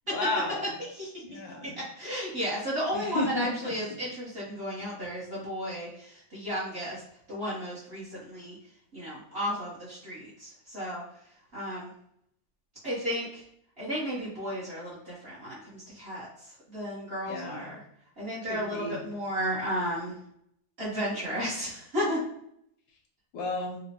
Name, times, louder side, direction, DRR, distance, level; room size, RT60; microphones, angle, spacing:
voice 1, 0.1-0.7 1.2-1.7 2.9-3.7 4.8-4.9 17.3-17.7 18.4-19.0 23.3-23.8, left 2 dB, 80° left, 1 dB, 1.5 m, -33 dB
voice 2, 0.8-1.4 1.8-7.0 7.3-8.6 8.9-11.0 11.5-11.9 12.8-13.4 13.8-16.3 16.7-17.8 18.2-20.2 20.8-22.2, equal, 45° right, -8 dB, 0.8 m, -33 dB
4.0 x 2.1 x 2.8 m, 0.72 s
omnidirectional pair, 2.0 m